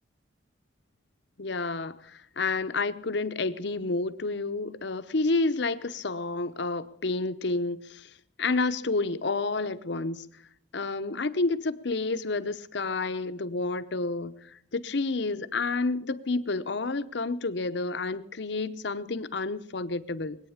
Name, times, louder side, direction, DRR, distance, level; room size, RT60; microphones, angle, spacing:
voice 1, 1.4-8.1 8.4-10.3 10.7-20.4, left 3 dB, 60° left, 0.8 m, -30 dB
22.0 x 9.1 x 7.2 m
head